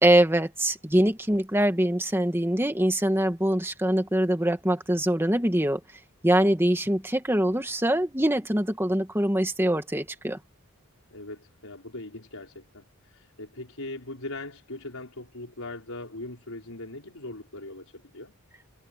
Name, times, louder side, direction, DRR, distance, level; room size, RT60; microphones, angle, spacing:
voice 1, 0.0-5.8 6.2-10.4, right 1 dB, 10° right, 1.9 m, -23 dB
voice 2, 11.1-18.3, left 2 dB, 75° left, 4.7 m, -40 dB
head